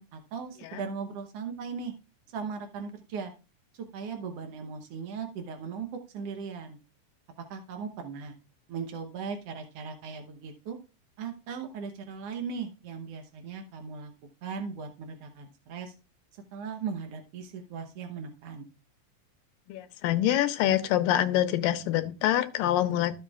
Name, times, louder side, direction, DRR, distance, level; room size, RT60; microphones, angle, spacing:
voice 1, 0.0-1.9 2.3-3.3 3.7-5.9 6.1-6.8 7.5-8.3 8.7-10.8 11.2-14.1 14.4-15.9 16.3-18.7, right 5 dB, 75° right, 5 dB, 1.4 m, -38 dB
voice 2, 19.7-23.1, left 12 dB, 85° left, 10 dB, 2.4 m, -25 dB
13.5 x 7.4 x 2.3 m, 0.33 s
omnidirectional pair, 4.0 m